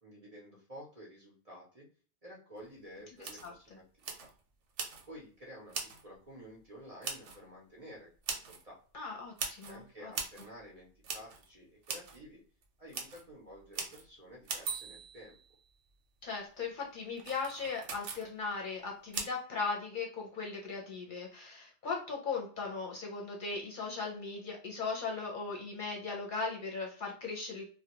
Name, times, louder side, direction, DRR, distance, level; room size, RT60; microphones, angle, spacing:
voice 1, 0.0-1.9 2.2-4.3 5.1-8.1 8.5-8.8 9.6-12.4 12.8-15.4, equal, 40° right, -3 dB, 0.6 m, -51 dB
sound 1, 2.6-2.7 3.2-3.5 4.0-4.3 4.8-5.1 5.7-6.0 7.0-7.4 8.2-8.6 9.4-9.8 10.1-10.5 11.0-11.5 11.8-12.2 12.6-12.7 12.9-13.2 13.7-14.0 14.4-15.7 17.2-18.3 19.1-19.3, right 5 dB, 85° right, 0.9 m, -40 dB
voice 2, 8.9-10.1 16.2-27.7, left 4 dB, 55° left, -1 dB, 0.7 m, -38 dB
2.3 x 2.1 x 2.8 m, 0.42 s
omnidirectional pair, 1.2 m